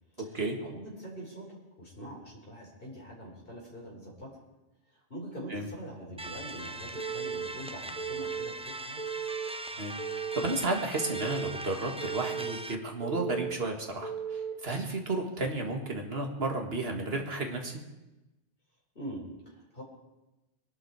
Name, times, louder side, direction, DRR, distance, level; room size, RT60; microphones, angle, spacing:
voice 1, 0.3-4.4 4.9-9.1 18.9-19.8, right 1 dB, 55° left, -4 dB, 4.8 m, -44 dB
sound 1, 6.2-12.7, right 2 dB, 5° right, 0.5 m, -40 dB
Telephone, 6.9-7.5 8.0-8.5 9.0-9.5 10.0-10.5 11.0-11.5 12.0-12.5 13.0-13.5 14.0-14.5, right 7 dB, 40° right, 3.2 m, -36 dB
voice 2, 9.8-17.8, right 2 dB, 60° right, 3 dB, 2.2 m, -33 dB
22.5 x 11.5 x 4.9 m, 1.0 s
omnidirectional pair, 1.1 m